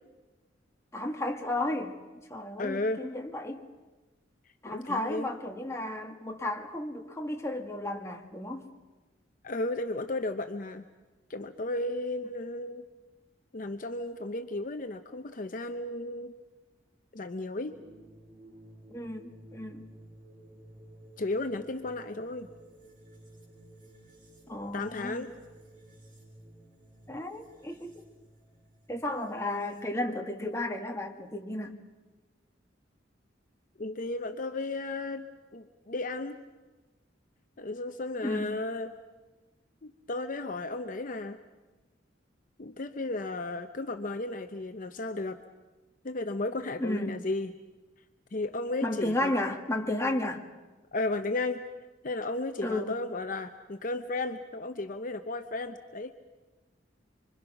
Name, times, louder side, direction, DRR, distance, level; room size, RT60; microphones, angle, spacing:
voice 1, 0.9-2.0 2.3-3.6 4.6-8.6 18.9-19.2 19.5-19.9 24.5-25.3 27.1-28.1 28.9-31.8 38.2-38.6 46.8-47.2 48.8-50.4 52.6-53.0, left 1 dB, 15° left, 2 dB, 1.6 m, -33 dB
voice 2, 2.6-3.0 4.7-5.3 9.4-10.8 11.3-12.9 13.5-16.3 17.1-17.8 21.2-22.5 24.7-25.3 33.8-35.3 35.5-36.4 37.6-38.9 39.8-41.4 42.6-45.4 46.0-47.5 48.3-49.3 50.9-51.6 52.0-56.1, left 2 dB, 45° left, 8 dB, 0.7 m, -34 dB
sound 1, 17.7-30.0, right 1 dB, 45° right, 6.8 m, -54 dB
25.5 x 25.5 x 5.9 m, 1.2 s
head